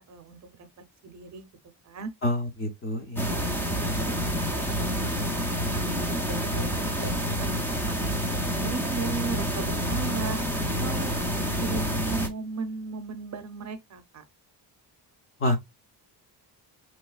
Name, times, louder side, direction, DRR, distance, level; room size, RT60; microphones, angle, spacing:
voice 1, 0.0-1.5 1.8-2.1 3.2-7.5 7.9-8.0 8.6-11.1 11.6-14.2, right 4 dB, 40° right, 0.6 m, -37 dB
voice 2, 2.2-3.3 15.4-15.6, left 1 dB, 30° left, 0.7 m, -27 dB
sound 1, 3.2-12.3, equal, 5° left, 0.4 m, -28 dB
5.3 x 3.0 x 2.3 m
cardioid pair, 165°, 43 cm